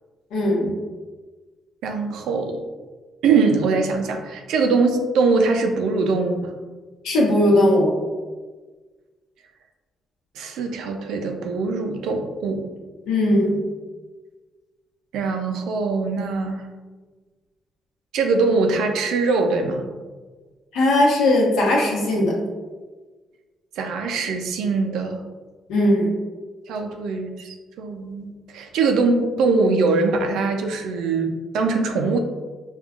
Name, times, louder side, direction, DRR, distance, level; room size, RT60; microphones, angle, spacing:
voice 1, 0.3-0.7 7.0-7.9 13.0-13.6 20.7-22.3 25.7-26.1, left 1 dB, 90° left, -3 dB, 0.9 m, -18 dB
voice 2, 1.8-2.6 3.2-6.5 10.4-12.7 15.1-16.6 18.1-19.9 23.8-25.2 26.7-32.2, right 4 dB, 85° right, 5 dB, 0.4 m, -22 dB
5.3 x 2.3 x 2.4 m, 1.3 s
cardioid pair, 90°, 0 cm